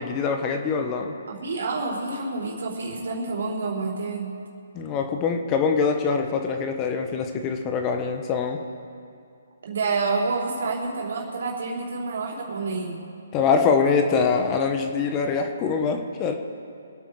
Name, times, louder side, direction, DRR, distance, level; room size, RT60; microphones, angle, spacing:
voice 1, 0.0-1.1 4.7-8.6 13.3-16.3, left 5 dB, 25° left, 5 dB, 1.2 m, -24 dB
voice 2, 1.3-4.4 9.6-13.0, right 3 dB, 65° right, -1 dB, 4.1 m, -28 dB
25.0 x 9.1 x 4.9 m, 2.4 s
hypercardioid pair, 145°, 0 cm